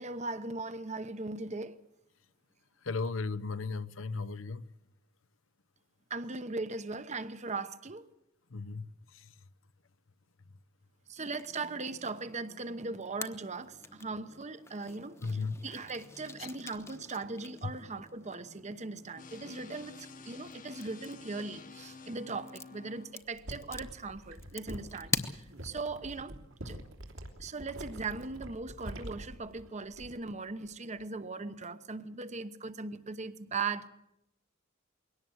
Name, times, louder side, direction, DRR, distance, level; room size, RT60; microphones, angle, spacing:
voice 1, 0.0-1.8 6.1-8.1 11.1-26.3 26.6-26.8 27.4-33.9, right 3 dB, 35° right, 1.0 m, -39 dB
voice 2, 2.8-4.7 8.5-9.3 15.2-15.5 16.4-16.5 17.6-17.7, left 4 dB, 75° left, 0.8 m, -36 dB
sound 1, 11.2-25.9, left 3 dB, 15° left, 1.1 m, -45 dB
sound 2, 19.2-23.1, left 4 dB, 45° left, 1.2 m, -50 dB
sound 3, 23.2-30.3 30.6-31.0, right 1 dB, 75° right, 3.1 m, -46 dB
22.0 x 18.0 x 8.0 m
head